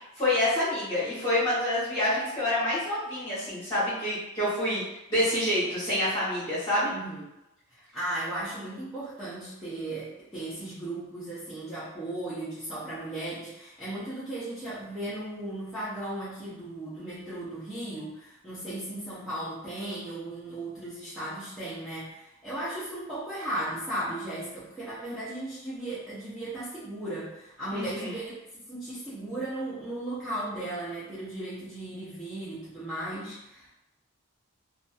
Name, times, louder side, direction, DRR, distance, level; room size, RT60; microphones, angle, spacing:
voice 1, 0.2-4.8 5.1-6.9 27.7-28.1, left 1 dB, 25° left, -15 dB, 1.1 m, -27 dB
voice 2, 6.9-7.3 7.7-33.7, right 1 dB, ahead, -14 dB, 0.6 m, -36 dB
2.5 x 2.3 x 2.4 m, 0.90 s
head